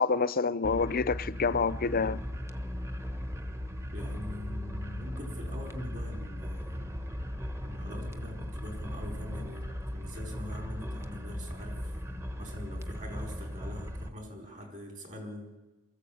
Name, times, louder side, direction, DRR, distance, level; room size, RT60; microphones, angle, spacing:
voice 1, 0.0-2.2, left 4 dB, 45° left, 0.6 m, -27 dB
sound 1, 0.6-14.1, equal, 15° right, 1.1 m, -37 dB
voice 2, 3.9-6.8 7.6-9.7 9.9-12.0 12.4-15.5, left 1 dB, 40° right, 4.5 m, -43 dB
23.5 x 14.5 x 8.6 m
head